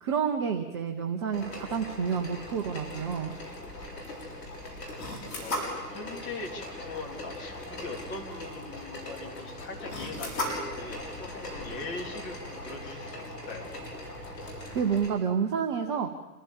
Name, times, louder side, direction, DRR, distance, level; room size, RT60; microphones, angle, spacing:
voice 1, 0.0-3.3 14.7-16.1, right 7 dB, 20° right, 4 dB, 0.6 m, -29 dB
sound 1, 1.3-15.1, left 1 dB, 75° left, 7.3 m, -39 dB
voice 2, 5.4-13.7, left 3 dB, 25° left, 0 dB, 3.3 m, -41 dB
27.0 x 15.5 x 7.2 m, 1.2 s
figure-of-eight pair, 125°, 49 cm